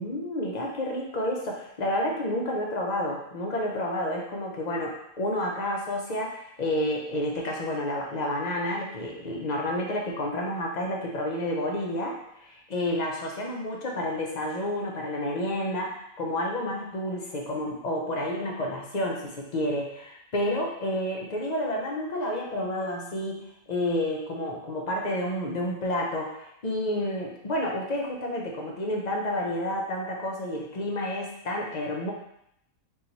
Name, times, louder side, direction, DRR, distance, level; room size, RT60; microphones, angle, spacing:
voice 1, 0.0-32.1, left 1 dB, 45° left, -1 dB, 0.5 m, -30 dB
3.7 x 3.0 x 4.0 m, 0.77 s
omnidirectional pair, 1.5 m